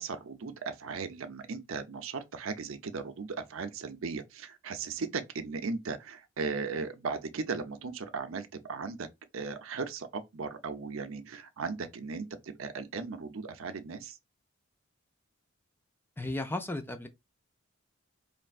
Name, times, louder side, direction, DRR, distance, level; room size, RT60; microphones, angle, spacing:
voice 1, 0.0-9.1 9.3-14.2, right 4 dB, 75° right, 0.5 m, -37 dB
voice 2, 16.2-17.1, left 2 dB, 10° left, 0.4 m, -34 dB
4.3 x 3.2 x 2.4 m
head